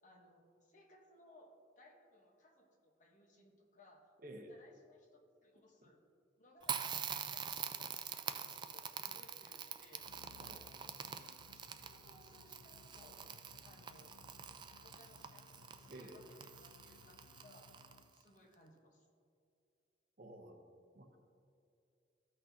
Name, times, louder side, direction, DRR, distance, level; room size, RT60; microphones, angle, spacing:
voice 1, 0.0-1.5 1.8-4.1 4.5-6.0 6.4-7.0 7.3-10.0 11.5-13.2 13.6-14.2 14.8-17.7 18.1-19.1, left 1 dB, 45° left, 1 dB, 1.1 m, -64 dB
voice 2, 4.2-4.5 10.3-10.6 11.8-11.9 15.9-16.2 20.2-20.6 20.9-21.2, right 1 dB, 50° right, 3 dB, 0.8 m, -52 dB
Crackle, 6.6-18.2, right 7 dB, 25° right, 0.3 m, -45 dB
sound 1, 10.0-18.2, left 5 dB, 85° left, 0.3 m, -63 dB
14.0 x 6.0 x 2.8 m, 2.5 s
head